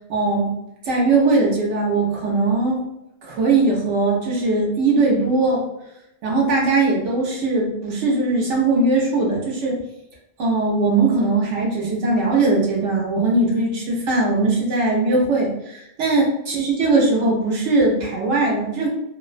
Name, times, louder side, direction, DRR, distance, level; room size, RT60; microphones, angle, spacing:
voice 1, 0.1-0.5 0.9-2.8 3.2-5.6 6.2-9.8 10.4-18.9, right 3 dB, 90° right, -2 dB, 1.0 m, -20 dB
2.5 x 2.1 x 2.4 m, 0.86 s
omnidirectional pair, 1.2 m